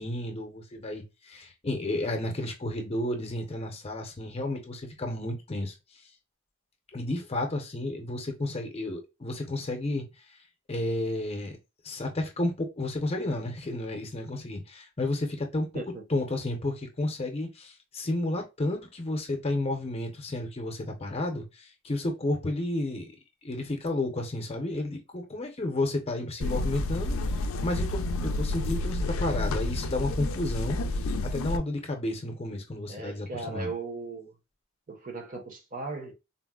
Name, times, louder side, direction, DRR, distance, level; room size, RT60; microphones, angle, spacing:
voice 1, 0.0-5.7 6.9-10.0 10.7-11.5 11.8-15.7 16.1-23.1 23.4-33.7, left 2 dB, 30° left, 0.6 m, -32 dB
sound 1, 26.4-31.6, left 2 dB, 90° left, 0.4 m, -30 dB
voice 2, 32.9-34.3 34.9-36.1, right 3 dB, 40° right, 0.7 m, -37 dB
3.9 x 2.0 x 2.2 m
head